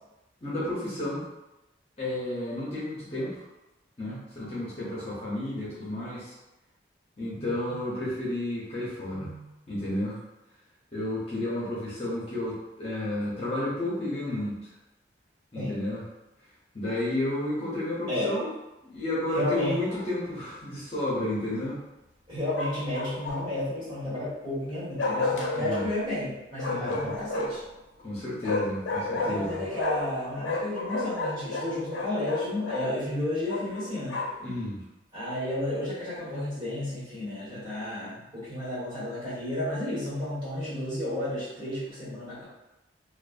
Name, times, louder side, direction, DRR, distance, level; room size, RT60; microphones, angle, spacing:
voice 1, 0.4-1.2 2.0-3.4 4.0-6.4 7.2-10.2 10.9-14.6 15.5-16.0 16.7-18.5 18.8-21.8 25.5-25.8 26.7-27.1 28.0-29.6 34.4-34.8, left 1 dB, 30° left, -8 dB, 0.6 m, -32 dB
voice 2, 19.3-19.8 22.3-27.6 29.2-34.2 35.1-42.4, left 1 dB, 25° right, -12 dB, 1.4 m, -32 dB
Bark, 19.5-20.1 22.5-23.6 25.0-25.9 26.6-27.7 28.4-30.2 30.4-32.8 33.5-34.4, left 2 dB, 75° left, 0.5 m, -31 dB
2.4 x 2.3 x 2.4 m, 0.98 s
head